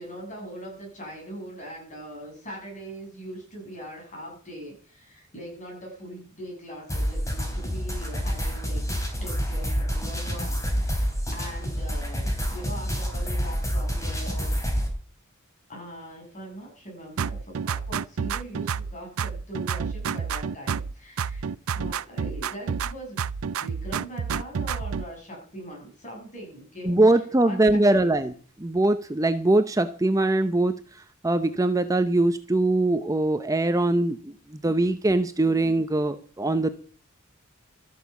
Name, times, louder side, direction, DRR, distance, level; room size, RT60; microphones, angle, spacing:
voice 1, 0.0-8.8 9.2-14.6 15.7-23.2 23.6-28.2, right 1 dB, 35° left, 1 dB, 7.4 m, -41 dB
sound 1, 6.9-14.9, equal, 15° left, 3.8 m, -28 dB
sound 2, 17.2-18.9 19.2-20.9 21.2-22.9 23.2-25.1, right 6 dB, 90° right, 0.5 m, -29 dB
voice 2, 26.8-28.3 28.6-30.8 31.2-34.3 34.6-36.7, right 2 dB, 15° right, 9 dB, 0.6 m, -22 dB
13.5 x 8.5 x 7.1 m, 0.42 s
head